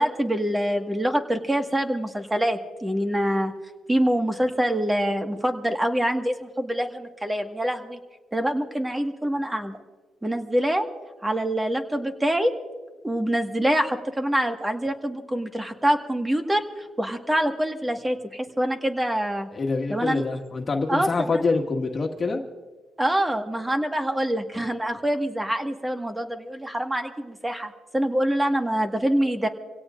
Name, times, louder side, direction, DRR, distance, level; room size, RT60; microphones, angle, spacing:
voice 1, 0.0-3.5 3.9-8.0 8.3-9.8 10.2-10.9 11.2-12.5 13.0-19.5 19.9-20.3 20.9-21.1 23.0-29.5, right 1 dB, 15° right, 5 dB, 1.7 m, -25 dB
voice 2, 19.5-22.4, left 3 dB, 35° left, 1 dB, 1.9 m, -25 dB
26.5 x 17.0 x 2.6 m, 1.3 s
cardioid pair, 90°, 0 cm